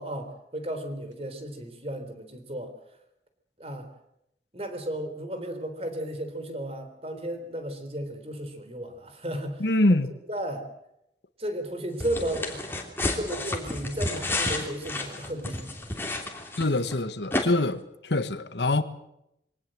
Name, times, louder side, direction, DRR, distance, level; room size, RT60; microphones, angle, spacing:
voice 1, 0.0-2.7 3.6-3.9 4.5-9.6 10.3-10.7 11.4-12.7 13.2-15.8, right 1 dB, 35° right, 3.5 m, -34 dB
voice 2, 9.6-10.1 16.6-18.8, left 2 dB, 80° left, 1.4 m, -24 dB
sound 1, 12.0-16.9 17.3-17.4, left 2 dB, 15° left, 3.1 m, -31 dB
23.5 x 18.5 x 7.7 m
head